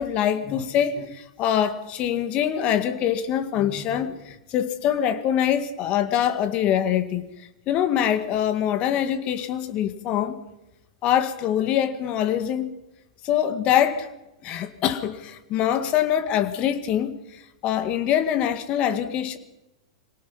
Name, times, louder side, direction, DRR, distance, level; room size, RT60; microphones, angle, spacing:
voice 1, 0.0-7.3 7.7-10.4 11.0-12.7 13.2-14.1 14.4-17.1 17.6-19.4, left 10 dB, 40° left, 2.1 m, -24 dB
26.5 x 18.0 x 5.6 m
hypercardioid pair, 110°, 3 cm